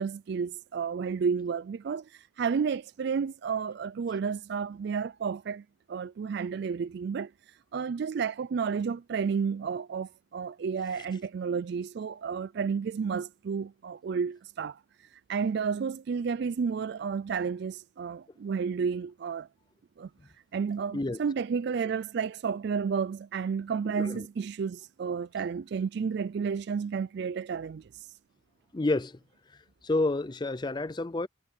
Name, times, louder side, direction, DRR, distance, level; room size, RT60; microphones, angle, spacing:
voice 1, 0.0-7.3 7.7-14.8 15.3-19.5 20.0-20.1 20.5-28.1, right 6 dB, 55° right, 0.3 m, -31 dB
voice 2, 28.7-29.2 29.8-31.3, left 2 dB, 20° left, 0.5 m, -29 dB
head